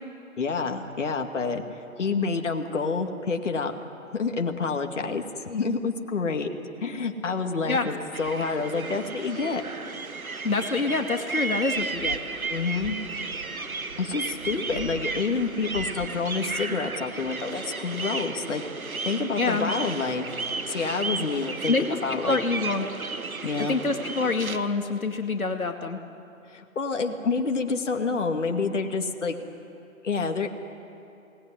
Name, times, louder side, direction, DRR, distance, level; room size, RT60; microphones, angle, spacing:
voice 1, 0.4-3.7 4.1-6.5 6.8-9.6 12.5-13.0 14.0-18.6 19.1-20.3 20.7-22.4 23.4-23.8 26.5-29.4 30.0-30.5, left 4 dB, 55° left, 4 dB, 2.4 m, -28 dB
sound 1, 8.1-24.6, right 4 dB, 80° right, 1.8 m, -34 dB
voice 2, 10.4-12.2 19.4-19.7 21.7-22.0 22.2-22.9 23.6-26.0, left 3 dB, 75° left, 5 dB, 2.3 m, -26 dB
28.5 x 20.0 x 9.7 m, 2.8 s
figure-of-eight pair, 150°, 42 cm